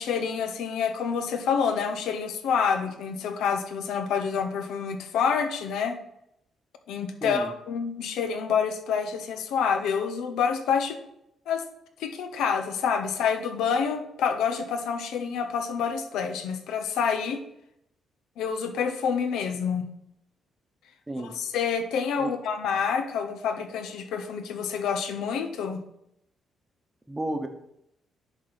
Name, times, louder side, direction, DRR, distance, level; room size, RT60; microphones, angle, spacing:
voice 1, 0.0-5.9 6.9-11.0 11.5-11.6 12.0-17.4 18.4-19.9 21.2-25.8, left 6 dB, 90° left, 7 dB, 0.7 m, -27 dB
voice 2, 27.1-27.5, right 1 dB, 10° right, 5 dB, 0.9 m, -32 dB
10.5 x 4.1 x 4.1 m, 0.79 s
cardioid pair, 115°, 0 cm